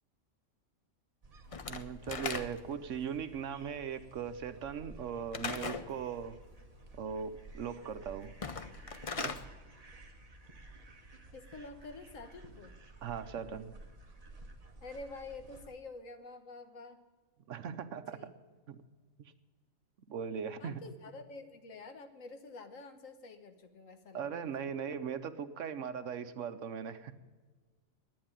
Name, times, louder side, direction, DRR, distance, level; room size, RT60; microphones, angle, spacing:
sound 1, 1.2-15.7, right 2 dB, 30° right, 1.2 m, -54 dB
Slam / Wood, 1.5-2.8 5.3-5.9 8.3-9.4, left 5 dB, 40° left, 0.5 m, -38 dB
voice 1, 1.7-6.4 6.9-8.3 9.2-9.3 13.0-13.7 17.5-18.3 18.7-18.8 19.2-19.3 20.1-20.8 24.1-27.1, right 7 dB, 70° right, 11 dB, 1.1 m, -39 dB
voice 2, 11.3-12.7 14.8-17.0 18.1-18.3 20.6-24.7, left 3 dB, 70° left, 8 dB, 1.6 m, -48 dB
10.5 x 9.5 x 8.9 m, 1.4 s
omnidirectional pair, 1.4 m